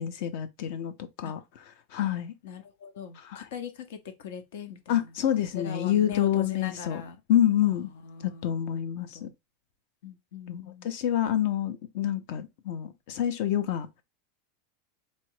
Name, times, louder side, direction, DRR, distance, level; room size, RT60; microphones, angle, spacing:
voice 1, 0.0-1.4 1.9-2.3 3.3-3.5 4.9-7.0 7.3-7.9 8.2-9.3 10.5-13.9, left 11 dB, 50° left, 0.7 m, -27 dB
voice 2, 2.4-5.1 5.5-7.2 7.6-8.8 9.1-9.3 10.0-10.9, left 7 dB, 75° left, 1.0 m, -40 dB
4.2 x 2.5 x 4.7 m
supercardioid pair, 170°, 0 cm